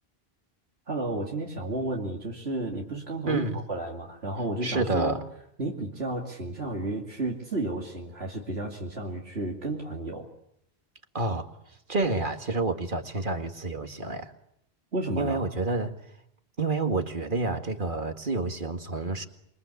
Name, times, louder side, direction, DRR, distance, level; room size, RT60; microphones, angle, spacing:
voice 1, 0.9-5.2 5.6-10.3 14.9-15.4, right 2 dB, 80° right, -1 dB, 3.0 m, -32 dB
voice 2, 3.3-3.6 4.6-5.2 11.1-11.5 11.9-14.3 15.2-15.9 16.6-19.3, right 3 dB, 55° right, 6 dB, 2.2 m, -28 dB
27.5 x 23.5 x 8.5 m, 0.76 s
omnidirectional pair, 1.0 m